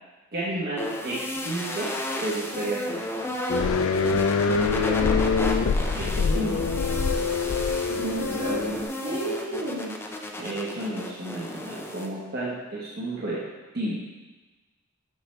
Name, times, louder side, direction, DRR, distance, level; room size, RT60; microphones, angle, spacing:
voice 1, 0.3-1.9 2.2-3.0 5.9-6.6 10.4-13.4 13.7-14.0, right 1 dB, 50° right, -8 dB, 1.2 m, -31 dB
sound 1, 0.8-12.1, left 1 dB, 10° left, 0.5 m, -33 dB
sound 2, 3.5-8.8, left 4 dB, 70° left, 0.4 m, -24 dB
voice 2, 4.0-5.1 7.9-9.9, right 1 dB, 75° right, -7 dB, 2.1 m, -32 dB
6.7 x 5.6 x 3.3 m, 1.2 s
head